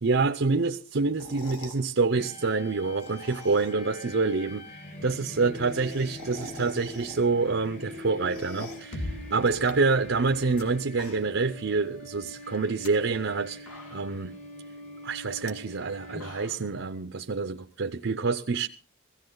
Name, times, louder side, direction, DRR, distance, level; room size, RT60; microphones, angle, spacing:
voice 1, 0.0-13.6 13.9-14.3 15.0-18.7, right 4 dB, 55° right, 0.6 m, -27 dB
sound 1, 1.1-1.8 2.8-3.9 4.3-4.4 4.6-4.7 4.9-5.0 5.3-7.5 7.8-8.9 9.4-10.6 10.9-11.5 11.8-11.9 12.6-12.9 13.4-13.5 13.7-14.3 15.3-15.5 15.9-16.7, left 2 dB, 85° left, 2.3 m, -45 dB
sound 2, 2.2-16.7, left 1 dB, 30° left, 1.6 m, -44 dB
sound 3, 8.9-12.8, left 1 dB, 55° left, 2.3 m, -42 dB
16.5 x 14.5 x 3.9 m
head